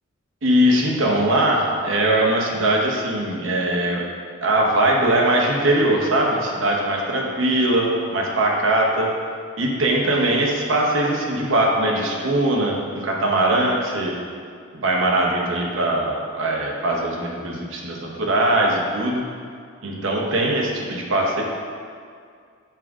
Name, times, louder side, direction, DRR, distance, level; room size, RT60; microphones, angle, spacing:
voice 1, 0.4-4.0 4.4-9.1 9.6-14.1 14.7-19.3 19.8-21.4, right 1 dB, 65° right, -1 dB, 0.9 m, -21 dB
5.8 x 3.7 x 4.7 m, 2.2 s
head